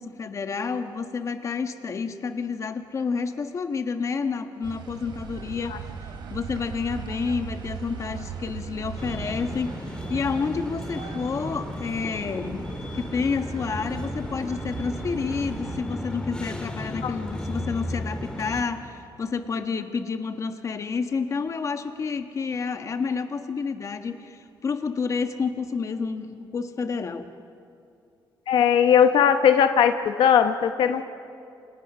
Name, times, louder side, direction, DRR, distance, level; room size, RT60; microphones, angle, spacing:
voice 1, 0.0-5.9 6.3-12.7 12.9-27.3, left 5 dB, 40° left, 7 dB, 1.4 m, -29 dB
sound 1, 4.6-15.8, right 6 dB, 70° right, 3.4 m, -38 dB
sound 2, 9.0-18.6, left 1 dB, 10° left, 2.6 m, -35 dB
voice 2, 28.5-31.1, left 8 dB, 80° left, 8 dB, 1.1 m, -19 dB
28.5 x 27.0 x 6.2 m, 2.5 s
cardioid pair, 135°, 8 cm